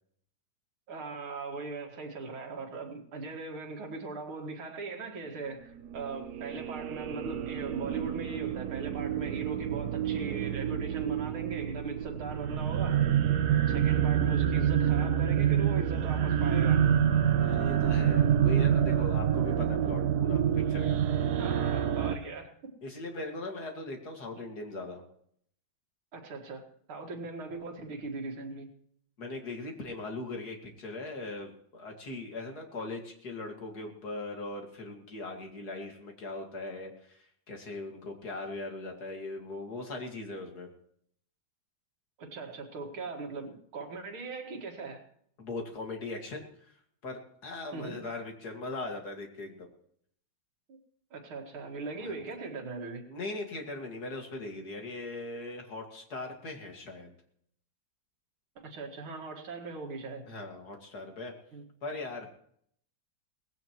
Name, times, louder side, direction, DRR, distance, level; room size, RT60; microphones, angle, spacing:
voice 1, 0.9-13.0 13.7-16.8 21.4-22.7 26.1-28.7 42.2-45.0 47.7-48.0 51.1-53.0 58.6-60.3 61.5-61.6, right 3 dB, 85° right, 2.7 m, -40 dB
sound 1, 5.9-22.2, right 9 dB, 60° right, 1.1 m, -27 dB
voice 2, 17.4-21.0 22.8-25.0 29.2-40.7 45.4-46.4 47.0-49.7 52.0-52.2 53.1-57.2 60.3-61.3 61.8-62.4, left 2 dB, 50° left, 2.6 m, -39 dB
19.0 x 16.0 x 3.1 m
omnidirectional pair, 2.2 m